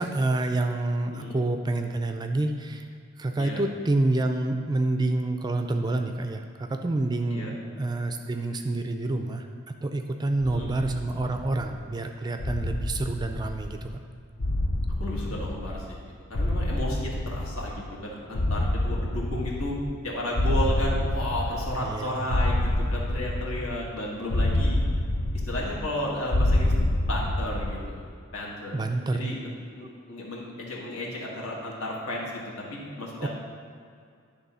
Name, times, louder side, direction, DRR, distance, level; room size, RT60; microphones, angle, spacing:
voice 1, 0.0-2.9 3.2-9.5 9.8-13.9 21.8-22.4 28.7-29.3 33.2-33.3, right 2 dB, 20° right, 6 dB, 0.4 m, -28 dB
voice 2, 1.1-1.4 3.4-3.6 7.3-7.5 10.4-10.7 15.0-16.0 16.3-19.8 20.0-24.8 25.4-28.0 28.3-28.8 29.1-32.4 32.7-33.3, left 1 dB, 75° left, -3 dB, 1.7 m, -33 dB
sound 1, 10.5-11.8 12.4-13.9 14.4-16.0 16.3-17.9 18.3-20.0 20.3-22.0 22.3-23.9 24.3-26.0 26.3-27.9, left 1 dB, 55° left, 0.6 m, -27 dB
10.5 x 3.6 x 5.5 m, 2.3 s
head